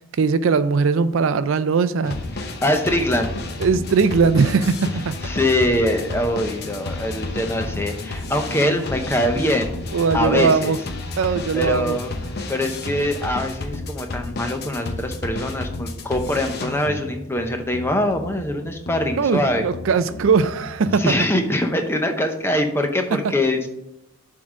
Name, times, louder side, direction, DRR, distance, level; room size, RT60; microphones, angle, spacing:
voice 1, 0.2-2.2 3.6-5.2 9.9-10.8 11.2-12.0 19.2-21.0, right 5 dB, 65° right, 14 dB, 0.4 m, -19 dB
sound 1, 2.0-21.0, left 2 dB, 45° left, 0.8 m, -32 dB
voice 2, 2.4-3.3 5.2-9.8 10.1-10.7 11.5-19.7 21.0-23.7, left 1 dB, 10° left, 5 dB, 0.7 m, -23 dB
7.5 x 3.8 x 6.3 m, 0.84 s
head